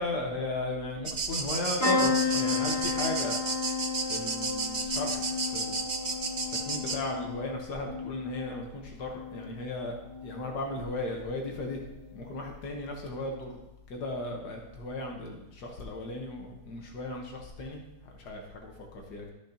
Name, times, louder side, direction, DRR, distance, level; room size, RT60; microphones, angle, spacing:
voice 1, 0.0-3.4 4.1-5.8 6.7-10.0 10.2-11.8 12.1-13.6 13.9-19.3, left 2 dB, 85° left, 1 dB, 1.8 m, -36 dB
sound 1, 1.1-7.0, right 4 dB, 45° right, 0.5 m, -32 dB
sound 2, 1.8-9.6 10.1-10.6 11.9-12.1 12.3-12.4, left 5 dB, 70° left, 2.7 m, -33 dB
13.5 x 7.0 x 2.9 m, 0.94 s
omnidirectional pair, 1.7 m